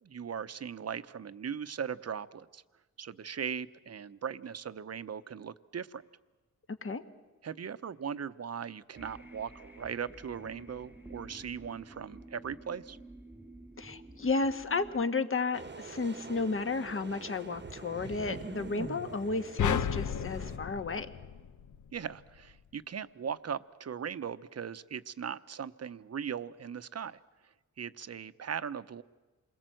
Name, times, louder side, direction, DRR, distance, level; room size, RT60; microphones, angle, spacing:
voice 1, 0.0-2.6 3.0-6.0 7.4-13.0 21.9-27.2 27.8-29.0, right 7 dB, 55° right, 13 dB, 0.9 m, -39 dB
sound 1, 8.9-15.0, right 2 dB, 5° right, 1.4 m, -51 dB
voice 2, 13.8-21.1, left 3 dB, 45° left, 9 dB, 1.4 m, -33 dB
sound 2, 15.5-20.6, right 4 dB, 35° right, 1.1 m, -44 dB
sound 3, 19.6-22.0, left 8 dB, 85° left, 0.8 m, -33 dB
28.0 x 21.5 x 7.8 m, 1.2 s
cardioid pair, 75°, 30 cm